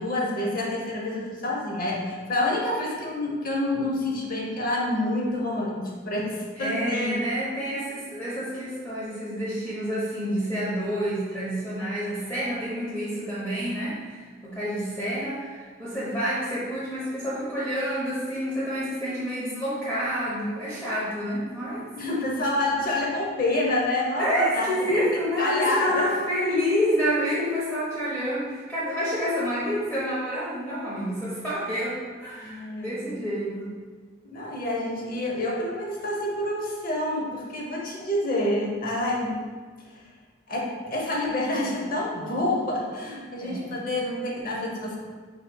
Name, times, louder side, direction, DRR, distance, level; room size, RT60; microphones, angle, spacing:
voice 1, 0.0-7.1 21.9-26.1 32.4-33.1 34.2-39.5 40.5-45.0, left 1 dB, 50° left, -2 dB, 0.8 m, -28 dB
voice 2, 6.6-21.9 24.2-33.7 43.4-43.7, equal, 10° left, -10 dB, 0.7 m, -28 dB
4.2 x 4.2 x 2.3 m, 1.5 s
head